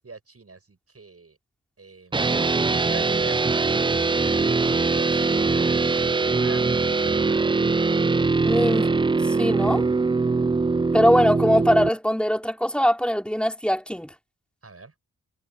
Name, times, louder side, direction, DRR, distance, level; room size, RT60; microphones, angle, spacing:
voice 1, 0.0-1.4 1.8-2.3 2.6-3.4 4.4-8.6 14.6-14.9, right 4 dB, 45° right, 7.9 m, -43 dB
sound 1, 2.1-11.9, right 4 dB, 15° right, 0.4 m, -22 dB
voice 2, 8.4-9.0 9.3-9.9 10.9-14.1, equal, 5° left, 3.6 m, -21 dB
cardioid pair, 65°, 33 cm